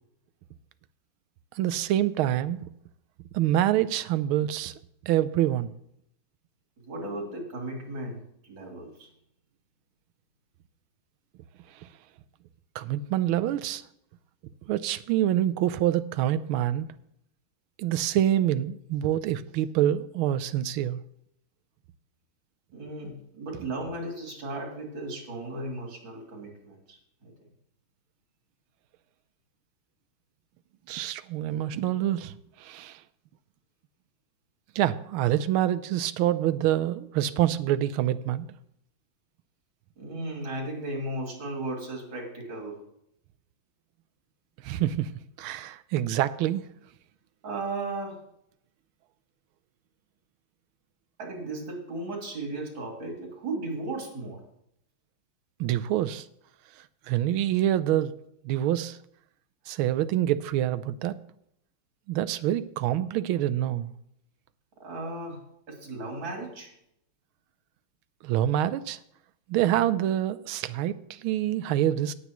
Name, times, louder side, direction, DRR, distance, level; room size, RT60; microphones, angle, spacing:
voice 1, 1.6-2.6 3.3-4.7 5.0-5.7 11.8-11.9 12.7-13.8 14.6-16.9 17.8-21.0 30.9-33.0 34.7-38.5 44.6-45.1 45.4-46.7 55.6-56.3 57.1-58.1 58.4-59.0 59.7-61.2 62.1-63.9 68.2-69.0 69.5-72.1, right 12 dB, 80° right, 14 dB, 1.4 m, -26 dB
voice 2, 6.8-9.1 22.7-27.3 40.0-42.8 47.4-48.2 51.2-54.4 64.8-65.4 65.7-66.7, right 2 dB, 65° right, 0 dB, 3.5 m, -36 dB
18.0 x 8.2 x 3.0 m, 0.75 s
omnidirectional pair, 2.3 m